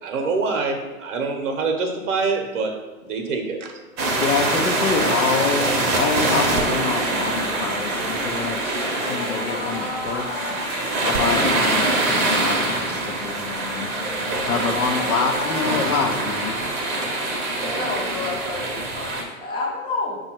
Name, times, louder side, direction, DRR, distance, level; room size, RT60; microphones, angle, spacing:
voice 1, 0.0-2.7 3.0-3.7, right 4 dB, 60° right, 3 dB, 0.8 m, -25 dB
sound 1, 4.0-19.2, right 2 dB, 25° right, 0.7 m, -24 dB
voice 2, 4.2-10.5 11.0-13.9 14.2-16.6, left 5 dB, 85° left, 5 dB, 0.7 m, -27 dB
sound 2, 8.8-18.5, left 3 dB, 55° left, 1.0 m, -36 dB
voice 3, 17.6-20.2, left 3 dB, 15° left, -3 dB, 0.6 m, -29 dB
5.1 x 2.3 x 4.3 m, 1.2 s
hypercardioid pair, 120°, 42 cm